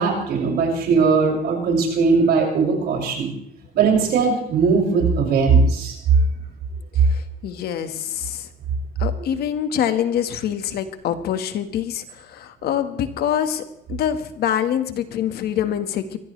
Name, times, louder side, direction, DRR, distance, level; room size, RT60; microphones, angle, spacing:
voice 1, 0.0-3.3 3.7-6.2, right 5 dB, 70° right, 0 dB, 6.7 m, -19 dB
voice 2, 6.9-8.5 9.0-13.6 13.9-16.2, left 9 dB, 70° left, 9 dB, 1.7 m, -25 dB
24.0 x 16.5 x 3.4 m, 0.77 s
cardioid pair, 110°, 17 cm